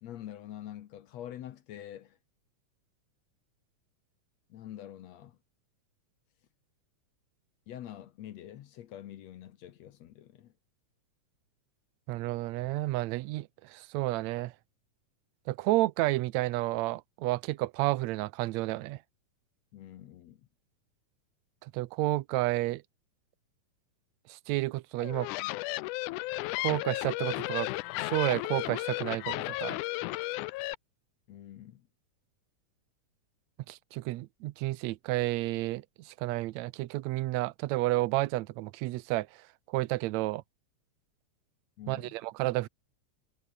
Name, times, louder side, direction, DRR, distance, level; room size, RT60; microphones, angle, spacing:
voice 1, 0.0-2.2 4.5-5.4 7.7-10.5 19.7-20.4 31.3-31.9 41.8-42.2, left 12 dB, 65° left, 2.1 m, -46 dB
voice 2, 12.1-14.5 15.5-19.0 21.6-22.8 24.3-25.3 26.6-27.7 28.0-29.8 33.7-39.3 39.7-40.4 41.9-42.7, right 18 dB, 75° right, 1.8 m, -31 dB
sound 1, 25.0-30.7, left 20 dB, 90° left, 2.1 m, -34 dB
omnidirectional pair, 3.5 m